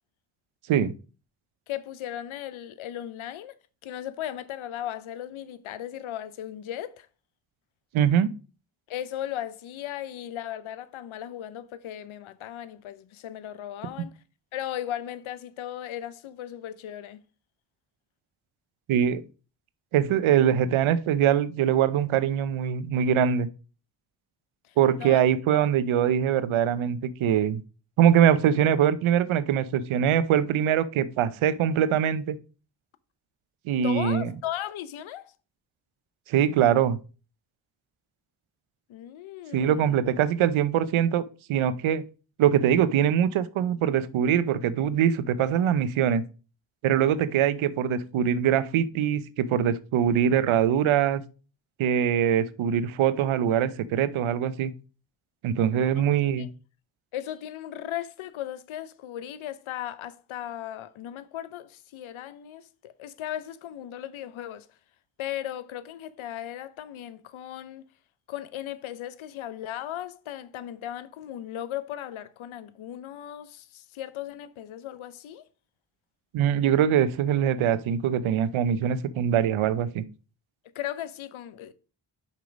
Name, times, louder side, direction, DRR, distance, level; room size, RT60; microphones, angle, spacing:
voice 1, 1.7-3.6 3.8-7.1 8.9-14.1 14.5-17.2 24.7-25.2 33.8-35.3 38.9-39.9 56.0-56.1 56.4-56.5 57.1-64.7 65.2-67.9 68.3-75.4 80.7-81.7, left 11 dB, 80° left, 0.8 m, -37 dB
voice 2, 7.9-8.3 18.9-19.2 19.9-23.5 24.8-27.6 28.0-32.4 33.7-34.3 36.3-37.0 39.5-41.2 41.5-42.0 42.4-46.2 46.8-51.2 51.8-54.7 55.4-56.5 76.3-80.0, right 9 dB, 85° right, 0.7 m, -23 dB
5.5 x 4.5 x 5.2 m
supercardioid pair, 45°, 47 cm